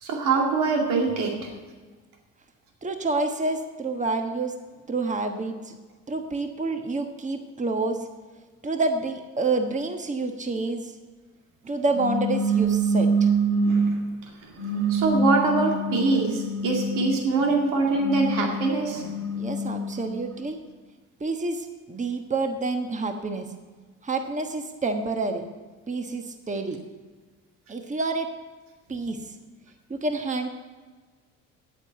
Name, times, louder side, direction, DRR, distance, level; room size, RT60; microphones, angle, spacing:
voice 1, 0.0-1.5 13.6-14.0 14.4-19.1, right 3 dB, 80° right, 0 dB, 2.3 m, -24 dB
voice 2, 2.8-4.5 4.9-5.8 6.1-8.1 8.6-10.9 11.6-13.3 19.3-20.6 21.2-23.5 24.0-25.4 25.9-26.8 27.7-28.3 28.9-29.2 29.9-30.5, right 3 dB, 25° right, 5 dB, 1.3 m, -28 dB
sound 1, 11.9-14.0 14.6-17.3 17.8-20.1, right 2 dB, 60° right, 3.8 m, -25 dB
9.4 x 8.0 x 8.0 m, 1.4 s
supercardioid pair, 80°, 31 cm